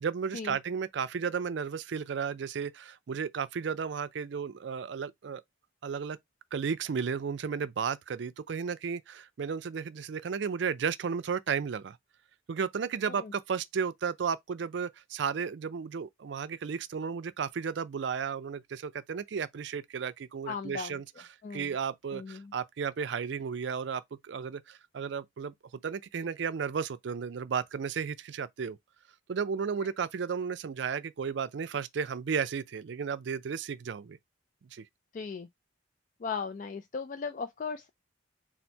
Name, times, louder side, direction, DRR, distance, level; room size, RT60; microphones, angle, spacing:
voice 1, 0.0-5.4 5.8-6.2 6.5-12.0 12.5-21.0 21.5-25.5 25.8-28.8 29.3-34.2 34.7-34.8, right 6 dB, 60° right, 0.4 m, -33 dB
voice 2, 20.5-21.0 21.4-21.8 22.1-22.5 29.8-29.9 35.1-35.5 36.2-37.9, left 5 dB, 40° left, 0.3 m, -37 dB
4.3 x 2.0 x 4.5 m
head